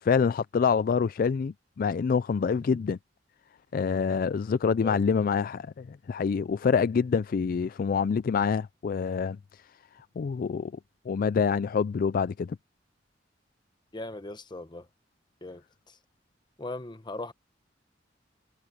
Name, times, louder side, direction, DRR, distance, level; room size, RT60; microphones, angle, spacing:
voice 1, 0.0-3.0 3.7-9.7 9.9-10.7 11.1-12.6, left 6 dB, 50° left, 0.3 m, -26 dB
voice 2, 13.9-14.9 15.4-16.0 16.6-17.3, left 2 dB, 25° left, 1.1 m, -39 dB
head